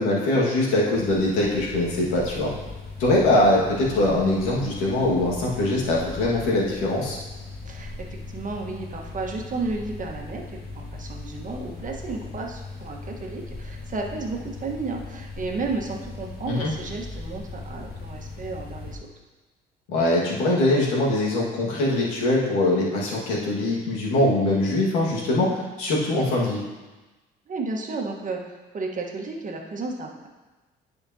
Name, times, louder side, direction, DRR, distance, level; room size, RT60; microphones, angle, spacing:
voice 1, 0.0-2.5 3.0-7.2 16.5-16.7 19.9-26.6, left 1 dB, 90° left, -4 dB, 1.8 m, -22 dB
sound 1, 0.9-19.0, left 3 dB, 50° left, 1.6 m, -38 dB
voice 2, 7.6-19.0 27.5-30.3, right 3 dB, 40° right, 1 dB, 1.4 m, -33 dB
11.0 x 5.1 x 2.8 m, 1.2 s
supercardioid pair, 75°, 21 cm